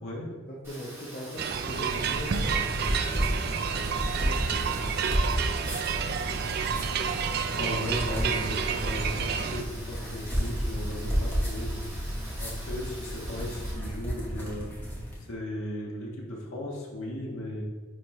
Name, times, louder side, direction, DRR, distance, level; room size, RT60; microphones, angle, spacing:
voice 1, 0.5-5.6, equal, 40° left, -4 dB, 0.8 m, -42 dB
Rain, 0.6-13.7, right 1 dB, 10° right, 1.8 m, -46 dB
sound 1, 1.4-9.6, right 6 dB, 45° right, 0.3 m, -30 dB
sound 2, 1.8-15.2, equal, 10° left, 1.1 m, -32 dB
voice 2, 7.5-11.8 12.4-14.7 15.2-17.6, left 1 dB, 75° left, -3 dB, 1.4 m, -36 dB
9.5 x 3.4 x 3.1 m, 1.3 s
head